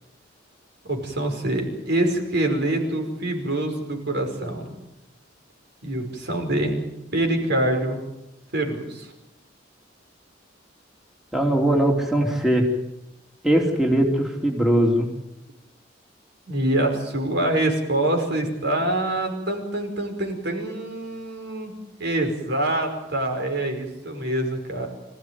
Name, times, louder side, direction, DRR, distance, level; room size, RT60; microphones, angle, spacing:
voice 1, 0.8-4.8 5.8-6.8 7.1-8.0 8.5-9.1 16.5-21.7 22.0-24.9, right 1 dB, 60° right, 3 dB, 5.3 m, -25 dB
voice 2, 11.3-12.7 13.4-15.1, right 1 dB, ahead, 1 dB, 3.0 m, -20 dB
26.0 x 16.0 x 9.6 m, 0.92 s
head